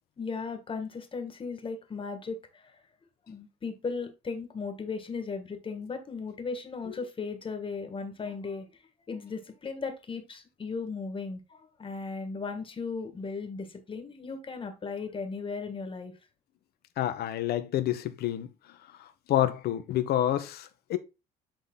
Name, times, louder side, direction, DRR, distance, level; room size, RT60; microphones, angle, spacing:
voice 1, 0.2-2.8 3.3-8.8 9.1-16.1, left 4 dB, 30° left, 1.7 m, -36 dB
voice 2, 17.0-18.5 19.3-21.0, left 12 dB, 70° left, 1.2 m, -28 dB
8.7 x 3.9 x 3.8 m
cardioid pair, 110°, 17 cm